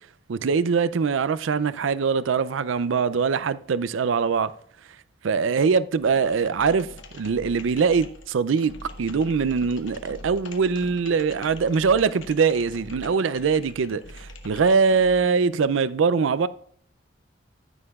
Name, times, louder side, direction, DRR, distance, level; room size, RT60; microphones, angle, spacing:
voice 1, 0.3-4.5 5.2-6.9 7.1-8.7 9.0-16.5, right 5 dB, 75° right, 0.4 m, -22 dB
sound 1, 6.0-15.3, left 1 dB, 70° left, 1.1 m, -43 dB
9.9 x 9.8 x 2.4 m
head